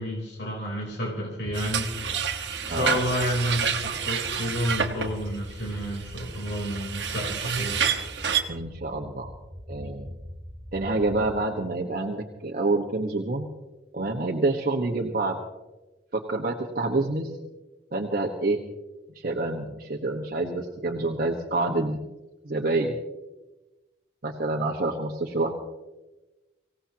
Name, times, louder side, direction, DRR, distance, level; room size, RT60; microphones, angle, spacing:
voice 1, 0.0-1.9 2.7-7.8, equal, 75° left, -2 dB, 3.6 m, -30 dB
sound 1, 1.4-11.4, equal, 10° right, 1.0 m, -42 dB
sound 2, 1.5-8.4, right 7 dB, 85° right, 1.4 m, -29 dB
voice 2, 8.5-9.3 9.7-10.1 10.7-13.4 13.9-15.4 16.1-17.3 17.9-18.6 19.1-22.0 22.4-23.0 24.2-25.5, right 2 dB, 55° right, 0 dB, 1.3 m, -27 dB
25.0 x 17.0 x 2.9 m, 1.1 s
head